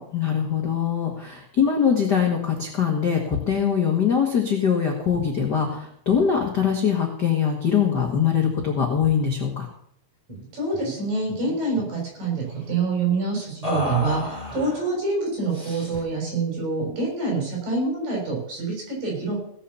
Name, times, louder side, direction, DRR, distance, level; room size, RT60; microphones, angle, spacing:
voice 1, 0.1-9.7, left 7 dB, 45° left, 1 dB, 1.4 m, -22 dB
sound 1, 10.3-10.5 10.7-11.0 11.3-12.0 13.6-14.9 15.5-16.1, left 2 dB, 10° right, 3.6 m, -32 dB
voice 2, 10.5-19.4, right 3 dB, 60° right, -2 dB, 8.0 m, -26 dB
17.5 x 7.1 x 7.1 m, 0.69 s
omnidirectional pair, 4.5 m